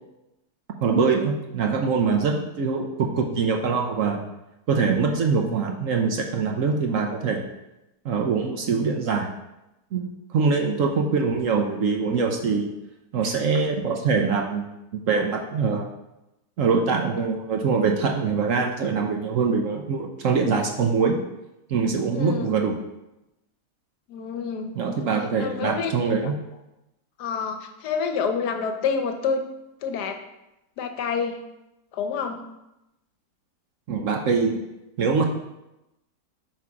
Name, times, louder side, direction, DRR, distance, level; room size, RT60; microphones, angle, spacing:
voice 1, 0.8-4.2 4.7-7.4 8.0-9.3 9.9-10.0 10.3-12.7 13.1-14.7 14.9-15.9 16.6-21.2 21.7-22.8 24.7-26.3 33.9-34.6 35.0-35.2, right 5 dB, 60° right, 3 dB, 1.0 m, -23 dB
voice 2, 22.1-22.6 24.1-24.7 25.4-25.9 27.2-29.4 29.8-30.2 30.8-31.4 31.9-32.4, left 6 dB, 75° left, 5 dB, 1.3 m, -28 dB
8.3 x 4.3 x 4.9 m, 0.93 s
omnidirectional pair, 1.8 m